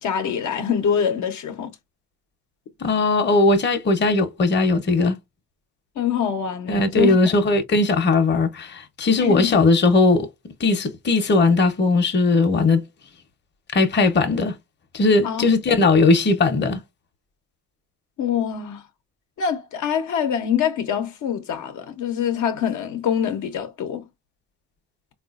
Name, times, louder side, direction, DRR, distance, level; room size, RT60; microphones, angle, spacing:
voice 1, 0.0-1.7 6.0-7.2 9.2-9.5 15.2-15.5 18.2-18.8 19.4-24.0, left 8 dB, 70° left, 0.8 m, -24 dB
voice 2, 2.8-5.2 6.7-12.8 13.7-14.6 14.9-16.8, left 3 dB, 35° left, 0.8 m, -19 dB
3.8 x 2.4 x 2.4 m
cardioid pair, 90°, 30 cm